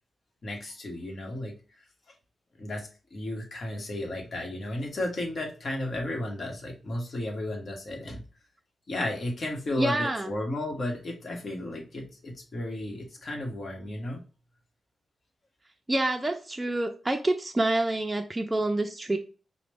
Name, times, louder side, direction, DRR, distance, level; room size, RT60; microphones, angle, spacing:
voice 1, 0.4-1.5 2.6-8.2 8.9-14.2, left 1 dB, 50° left, 1 dB, 1.2 m, -34 dB
voice 2, 9.8-10.3 15.9-19.2, right 1 dB, 15° right, 3 dB, 0.4 m, -27 dB
4.9 x 2.1 x 3.3 m, 0.35 s
cardioid pair, 95°, 0 cm